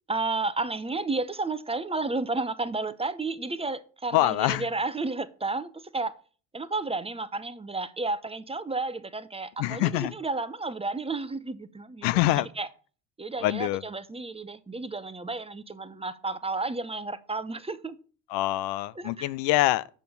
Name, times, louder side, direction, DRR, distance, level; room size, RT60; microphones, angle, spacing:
voice 1, 0.1-6.2 6.5-12.7 13.2-18.0 19.0-19.3, right 3 dB, 15° right, 0.7 m, -32 dB
voice 2, 4.1-4.7 9.6-10.1 12.0-12.5 13.4-13.8 18.3-19.9, left 16 dB, 75° left, 0.6 m, -25 dB
6.9 x 6.1 x 6.7 m
supercardioid pair, 75°, 41 cm